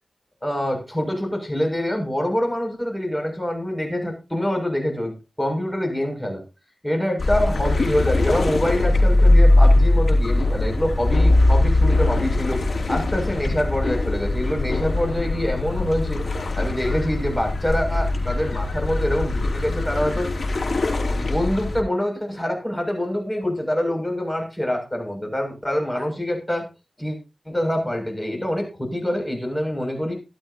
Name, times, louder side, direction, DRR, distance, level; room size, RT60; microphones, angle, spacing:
voice 1, 0.4-6.4 6.8-16.2 16.6-20.3 21.1-26.7 27.0-27.2 27.5-30.1, equal, 15° left, 2 dB, 7.1 m, -25 dB
sound 1, 7.2-21.8, left 2 dB, 70° left, 3.4 m, -20 dB
15.5 x 12.0 x 2.9 m, 0.30 s
cardioid pair, 45°, 0 cm